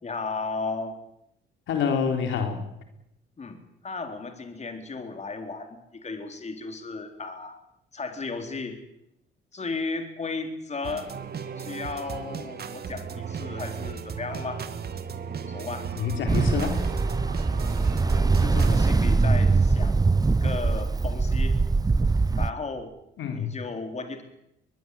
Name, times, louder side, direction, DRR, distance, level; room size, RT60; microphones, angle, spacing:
voice 1, 0.0-1.0 3.4-7.6 7.9-8.8 9.5-11.1 11.6-14.7 15.5-15.9 18.1-20.0 20.3-21.6 22.3-22.9 23.2-24.2, left 3 dB, 35° left, 6 dB, 4.0 m, -35 dB
voice 2, 1.7-2.6 16.0-16.8 23.2-23.5, left 6 dB, 75° left, 5 dB, 4.0 m, -27 dB
sound 1, 10.8-18.8, right 6 dB, 50° right, 2.3 m, -36 dB
Ocean, 16.3-22.5, right 3 dB, 20° right, 0.9 m, -22 dB
22.0 x 22.0 x 8.6 m, 0.82 s
cardioid pair, 90°, 20 cm